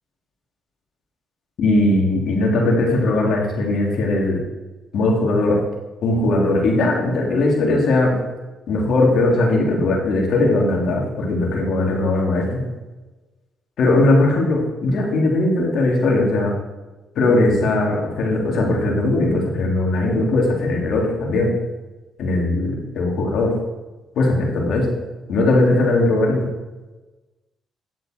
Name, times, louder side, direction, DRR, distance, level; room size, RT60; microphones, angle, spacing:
voice 1, 1.6-4.4 4.9-5.6 6.0-8.2 8.7-12.6 13.8-16.5 17.1-21.5 22.2-23.5 24.1-24.9 25.3-26.4, left 2 dB, 70° left, -1 dB, 3.2 m, -19 dB
10.5 x 7.9 x 4.6 m, 1.1 s
cardioid pair, 90°, 0 cm